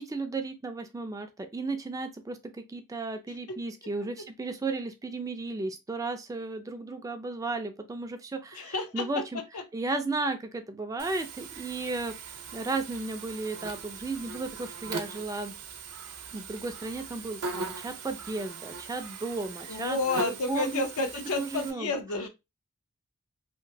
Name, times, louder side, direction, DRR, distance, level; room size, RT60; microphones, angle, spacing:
voice 1, 0.0-9.4 9.7-12.2 12.5-15.5 16.3-20.8 21.3-21.9, right 3 dB, 15° right, 0.3 m, -34 dB
voice 2, 3.3-3.6 3.8-4.3 8.5-9.2 9.5-9.6 19.7-22.3, left 3 dB, 80° left, 0.6 m, -31 dB
Buzz, 11.0-21.7, right 4 dB, 85° right, 0.6 m, -40 dB
2.9 x 2.5 x 2.6 m
head